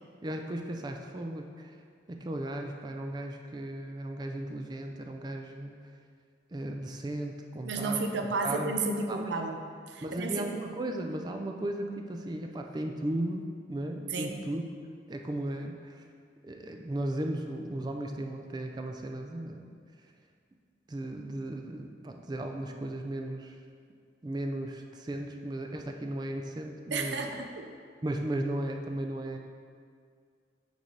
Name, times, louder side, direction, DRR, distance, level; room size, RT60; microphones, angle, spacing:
voice 1, 0.2-1.7 2.1-5.8 6.5-8.0 8.4-8.8 9.1-9.3 10.0-14.6 15.1-16.0 16.4-19.7 20.9-23.6 24.2-27.2 28.0-29.4, right 1 dB, 25° right, 3 dB, 0.3 m, -36 dB
voice 2, 7.7-9.6 9.9-10.5 14.1-14.3 26.9-27.7, right 3 dB, 80° right, 4 dB, 0.6 m, -32 dB
6.4 x 3.3 x 5.2 m, 2.1 s
head